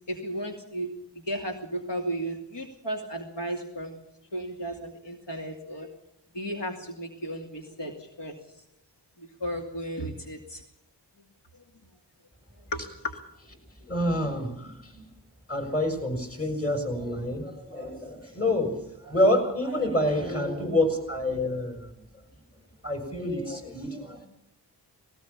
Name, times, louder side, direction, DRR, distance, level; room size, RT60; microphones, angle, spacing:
voice 1, 0.1-0.9 1.3-4.0 4.3-5.9 6.3-8.3 9.2-10.6 12.7-13.1, right 1 dB, 80° left, 2 dB, 2.7 m, -34 dB
voice 2, 13.8-15.0 15.5-21.9 22.8-24.3, left 1 dB, 35° left, 4 dB, 7.1 m, -28 dB
19.5 x 18.5 x 7.3 m, 0.79 s
wide cardioid pair, 60°, 41 cm